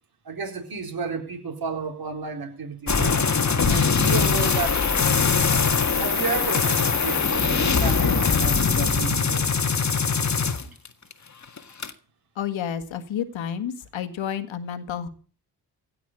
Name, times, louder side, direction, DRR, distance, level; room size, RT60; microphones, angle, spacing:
voice 1, 0.2-3.2 3.6-4.9 5.9-9.4, right 5 dB, 45° right, 2 dB, 4.2 m, -32 dB
sound 1, 2.9-11.1 11.4-11.9, left 5 dB, 35° left, 1.7 m, -22 dB
voice 2, 12.4-15.1, left 8 dB, 70° left, 10 dB, 1.9 m, -30 dB
16.5 x 5.9 x 10.0 m, 0.41 s
supercardioid pair, 50°, 48 cm